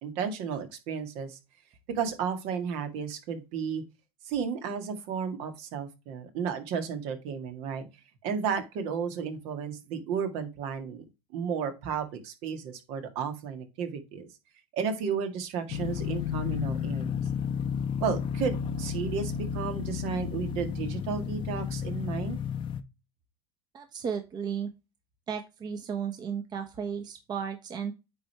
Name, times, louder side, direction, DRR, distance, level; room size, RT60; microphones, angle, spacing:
voice 1, 0.0-1.4 1.9-3.8 4.2-7.8 8.2-11.0 11.3-14.3 14.7-17.3 18.0-22.4, right 6 dB, 60° right, 7 dB, 1.8 m, -33 dB
sound 1, 15.7-22.8, left 8 dB, 45° left, 0.8 m, -32 dB
voice 2, 23.7-24.7 25.3-27.9, right 7 dB, 35° right, 6 dB, 1.3 m, -34 dB
9.2 x 3.5 x 4.4 m, 0.26 s
supercardioid pair, 110°, 13 cm